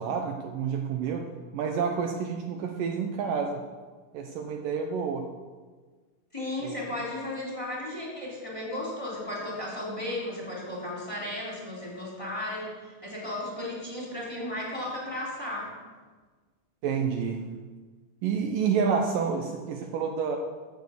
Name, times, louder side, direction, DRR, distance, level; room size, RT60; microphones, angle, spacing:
voice 1, 0.0-3.6 4.1-5.3 6.6-6.8 16.8-17.5 18.2-20.4, right 6 dB, 75° right, 3 dB, 2.4 m, -29 dB
voice 2, 6.3-15.7, left 1 dB, 10° left, -4 dB, 3.6 m, -35 dB
15.0 x 6.9 x 8.0 m, 1.4 s
omnidirectional pair, 4.3 m